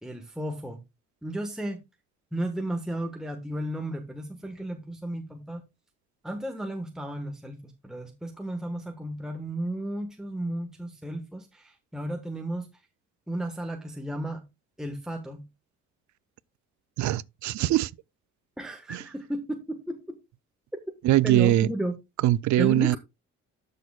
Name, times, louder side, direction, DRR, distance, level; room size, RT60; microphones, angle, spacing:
voice 1, 0.0-0.8 1.2-1.8 2.3-5.6 6.2-12.7 13.3-14.4 14.8-15.4 18.6-20.2 21.2-21.9 22.6-23.0, right 1 dB, ahead, 1.3 m, -33 dB
voice 2, 17.0-17.9 18.9-19.0 21.0-21.7 22.2-23.0, right 14 dB, 70° right, 0.5 m, -22 dB
12.5 x 6.5 x 2.3 m
cardioid pair, 90°, 30 cm